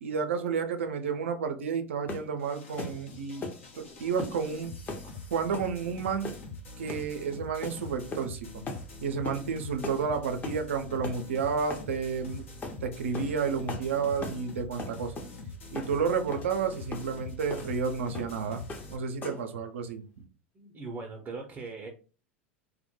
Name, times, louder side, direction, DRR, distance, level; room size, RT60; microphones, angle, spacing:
voice 1, 0.0-3.4 3.8-4.7 5.3-6.3 6.8-8.5 9.0-12.4 12.8-15.1 15.7-18.6 18.9-20.0, right 6 dB, 75° right, 7 dB, 0.4 m, -31 dB
sound 1, 2.1-2.3 2.8-3.0 3.4-3.6 4.2-4.4 4.9-5.1 5.5-5.7 6.2-6.5 6.9-7.1 7.6-7.8 8.1-8.4 8.7-8.8 9.2-9.4 9.8-10.0 10.4-10.6 11.0-11.2 11.7-11.9 12.6-12.8 13.1-13.3 13.7-13.9 14.2-14.4 14.8-15.3 15.7-15.9 16.3-16.5 16.9-17.1 17.5-17.7 18.1-18.4 18.7-18.9 19.2-19.5, left 2 dB, 25° left, 0.6 m, -38 dB
sound 2, 2.4-19.0, left 3 dB, 75° left, 0.8 m, -44 dB
voice 2, 20.5-21.9, right 4 dB, 25° right, 1 dB, 0.5 m, -40 dB
2.1 x 2.1 x 2.9 m, 0.36 s
hypercardioid pair, 90°, 7 cm